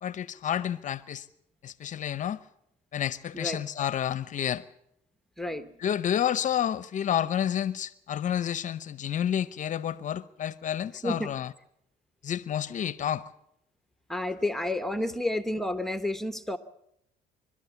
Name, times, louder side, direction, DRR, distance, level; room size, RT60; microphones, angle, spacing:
voice 1, 0.0-1.3 1.6-2.4 2.9-4.6 5.8-11.5 12.2-13.2, left 10 dB, 50° left, 0.7 m, -30 dB
voice 2, 5.4-5.7 11.0-11.3 14.1-16.6, left 1 dB, ahead, 1.0 m, -30 dB
29.5 x 13.0 x 7.0 m
cardioid pair, 110°, 17 cm